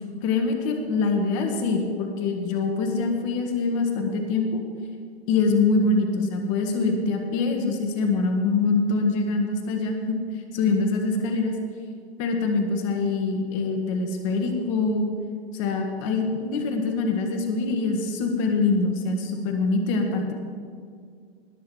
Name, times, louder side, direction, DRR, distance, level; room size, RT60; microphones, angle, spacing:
voice 1, 0.2-4.6 5.3-10.2 10.5-11.5 12.2-15.1 15.5-20.3, left 3 dB, 30° left, 4 dB, 1.7 m, -24 dB
19.5 x 6.5 x 4.7 m, 2.2 s
figure-of-eight pair, 125°, 31 cm